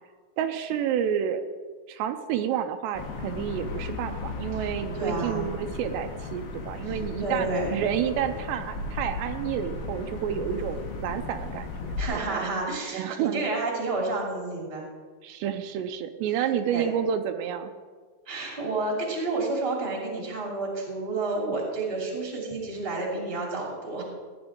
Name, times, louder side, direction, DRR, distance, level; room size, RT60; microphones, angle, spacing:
voice 1, 0.4-1.4 1.9-12.5 12.9-13.4 15.2-17.7, right 9 dB, 85° right, 7 dB, 2.8 m, -30 dB
sound 1, 2.9-12.0, left 3 dB, 65° left, 3.1 m, -35 dB
voice 2, 4.9-5.5 6.8-7.8 12.0-14.9 16.7-16.9 18.3-24.0, right 2 dB, 15° right, -2 dB, 2.2 m, -30 dB
17.0 x 10.5 x 3.7 m, 1.5 s
omnidirectional pair, 5.0 m